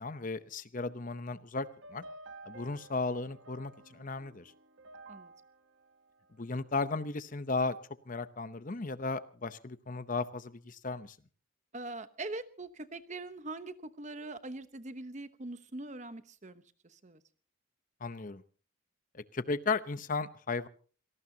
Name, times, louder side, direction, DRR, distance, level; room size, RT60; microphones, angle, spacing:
voice 1, 0.0-2.0 2.4-4.5 6.4-7.8 8.1-11.2 18.0-18.4 19.1-20.7, left 3 dB, 40° left, 13 dB, 0.8 m, -35 dB
sound 1, 1.6-6.9, right 2 dB, 60° right, 1.2 m, -53 dB
voice 2, 11.7-17.2, right 2 dB, 35° right, 12 dB, 1.0 m, -42 dB
27.0 x 18.5 x 2.8 m, 0.38 s
head